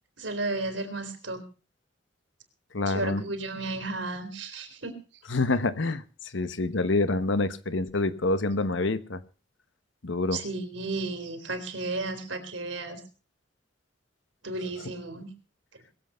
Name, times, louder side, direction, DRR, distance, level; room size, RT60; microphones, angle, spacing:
voice 1, 0.2-1.4 2.9-5.0 10.3-13.0 14.4-15.3, right 2 dB, 80° right, 7 dB, 3.5 m, -33 dB
voice 2, 2.7-3.2 5.3-9.2 10.0-10.4, left 2 dB, 80° left, 13 dB, 1.1 m, -27 dB
21.5 x 8.1 x 5.6 m, 0.36 s
head